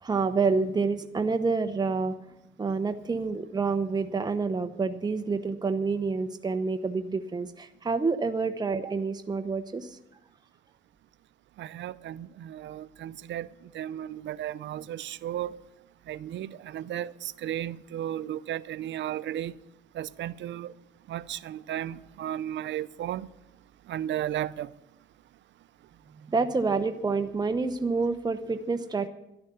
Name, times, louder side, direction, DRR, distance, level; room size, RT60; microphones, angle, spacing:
voice 1, 0.0-2.1 2.6-10.0 26.3-29.1, right 4 dB, 20° right, 0.9 m, -28 dB
voice 2, 11.6-15.6 16.1-19.5 19.9-20.7 21.1-23.3 23.9-24.7, right 11 dB, 70° right, 0.6 m, -34 dB
12.5 x 10.5 x 6.9 m
cardioid pair, 90°, 20 cm